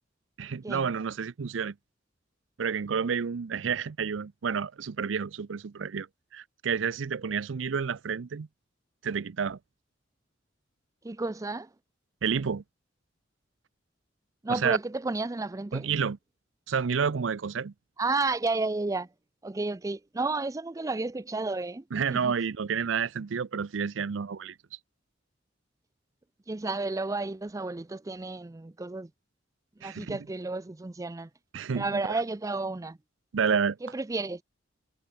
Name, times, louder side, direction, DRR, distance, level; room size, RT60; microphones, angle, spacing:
voice 1, 0.4-1.7 2.6-6.1 6.3-8.5 9.0-9.6 12.2-12.6 14.5-14.8 15.7-16.2 16.7-17.7 21.9-24.5 29.8-30.2 31.5-32.2 33.3-33.8, right 6 dB, 80° right, 0.5 m, -30 dB
voice 2, 11.0-11.7 14.4-15.9 18.0-19.1 19.4-22.3 26.5-29.1 29.8-31.3 31.8-33.0 33.8-34.4, right 3 dB, 15° right, 0.5 m, -32 dB
head